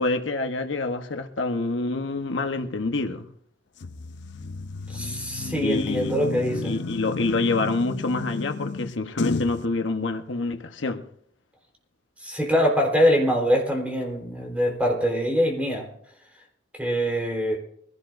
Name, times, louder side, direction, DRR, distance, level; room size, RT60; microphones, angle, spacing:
voice 1, 0.0-3.3 5.6-6.2 6.6-11.0, left 3 dB, 85° left, 1.1 m, -27 dB
sound 1, 3.8-9.6, left 3 dB, 65° left, 0.5 m, -32 dB
voice 2, 4.9-6.7 12.2-15.9 16.8-17.6, equal, 5° right, 3.8 m, -23 dB
24.0 x 16.5 x 2.6 m
head